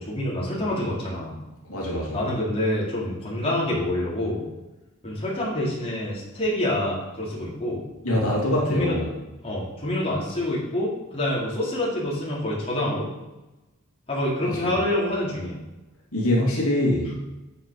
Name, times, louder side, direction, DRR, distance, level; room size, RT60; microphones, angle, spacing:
voice 1, 0.0-1.4 2.1-4.5 5.0-7.8 8.7-9.0 9.4-13.1 14.1-15.6, left 1 dB, 25° left, -6 dB, 3.7 m, -27 dB
voice 2, 1.7-2.2 8.0-9.2 14.4-14.7 16.1-17.1, left 1 dB, 80° left, -4 dB, 2.6 m, -24 dB
9.3 x 7.8 x 5.4 m, 1.0 s
head